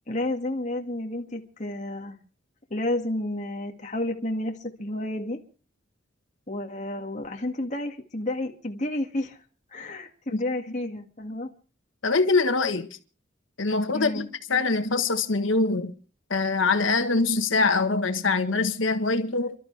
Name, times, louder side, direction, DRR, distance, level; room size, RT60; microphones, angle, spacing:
voice 1, 0.1-2.2 2.7-5.4 6.5-9.4 9.7-11.5 13.9-14.3, left 1 dB, 35° left, 2.2 m, -31 dB
voice 2, 12.0-12.9 13.6-14.2 14.5-15.9 16.3-19.5, left 3 dB, 80° left, 1.4 m, -23 dB
29.5 x 12.5 x 3.4 m
head